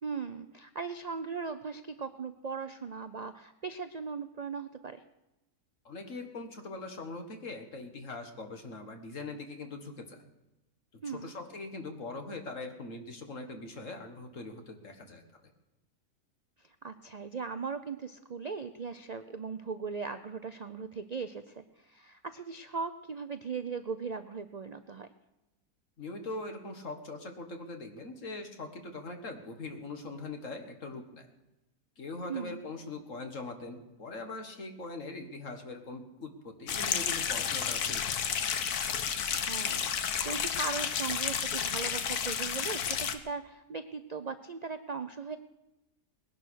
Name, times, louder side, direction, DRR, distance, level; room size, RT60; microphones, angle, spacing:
voice 1, 0.0-5.0 11.0-11.3 16.6-25.1 32.3-32.7 39.4-45.4, right 5 dB, 75° right, 10 dB, 0.3 m, -38 dB
voice 2, 5.8-10.2 11.0-15.5 26.0-31.3 32.0-38.2, left 3 dB, 55° left, 5 dB, 2.0 m, -42 dB
sound 1, 36.7-43.1, left 7 dB, 75° left, 1.5 m, -31 dB
19.5 x 11.0 x 6.4 m, 0.98 s
omnidirectional pair, 1.6 m